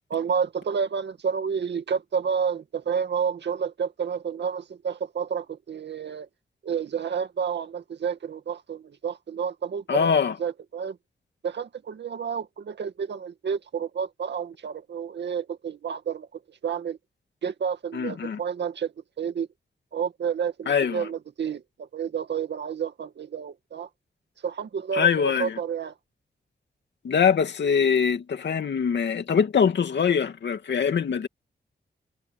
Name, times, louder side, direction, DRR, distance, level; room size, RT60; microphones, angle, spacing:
voice 1, 0.1-6.3 6.6-10.1 10.4-11.0 11.4-17.0 17.4-19.5 19.9-23.9 24.4-25.9, right 7 dB, 80° right, 2.2 m, -30 dB
voice 2, 9.9-10.4 17.9-18.4 20.7-21.1 24.9-25.6 27.0-31.3, left 7 dB, 80° left, 2.6 m, -23 dB
wide cardioid pair, 175°, 18 cm